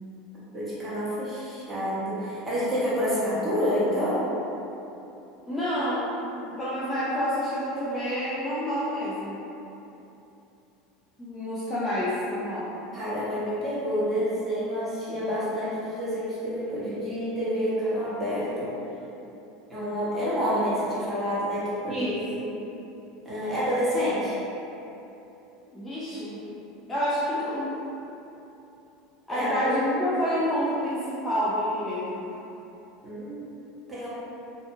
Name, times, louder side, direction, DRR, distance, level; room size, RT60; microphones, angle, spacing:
voice 1, 0.5-4.3 12.9-18.7 19.7-22.1 22.4-22.5 23.2-24.4 29.3-29.5 33.0-33.6 33.9-34.1, equal, 15° right, -10 dB, 0.9 m, -28 dB
voice 2, 5.5-9.4 11.2-12.7 21.9-22.5 25.6-26.4 26.9-27.9 29.3-32.2, equal, 10° left, -11 dB, 0.4 m, -28 dB
2.7 x 2.3 x 2.6 m, 3.0 s
supercardioid pair, 140°, 0 cm